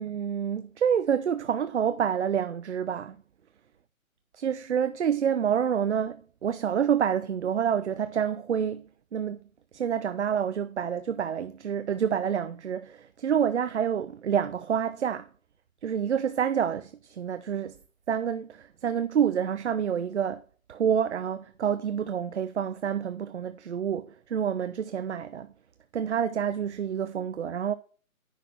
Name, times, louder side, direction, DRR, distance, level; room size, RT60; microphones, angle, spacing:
voice 1, 0.0-3.2 4.3-8.9 9.1-9.4 9.7-15.3 15.8-17.8 18.1-20.4 20.7-25.5 25.9-27.7, right 8 dB, 55° right, 0.5 m, -28 dB
10.0 x 4.1 x 4.3 m
hypercardioid pair, 160°, 42 cm